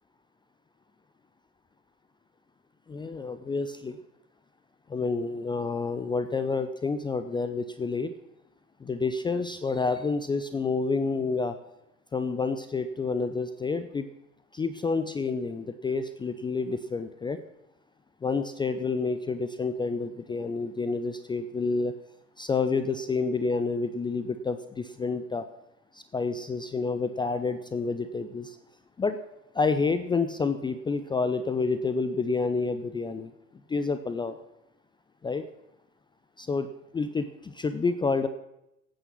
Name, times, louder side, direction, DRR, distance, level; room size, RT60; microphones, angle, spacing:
voice 1, 2.9-4.0 4.9-8.1 8.8-11.6 12.1-14.1 14.5-17.4 18.2-21.9 22.4-25.5 25.9-28.6 29.0-29.2 29.5-33.3 33.7-34.4 35.2-35.4 36.4-36.7 36.9-38.3, left 4 dB, 10° left, 11 dB, 0.5 m, -29 dB
14.0 x 9.0 x 6.2 m, 0.86 s
figure-of-eight pair, 70°, 38 cm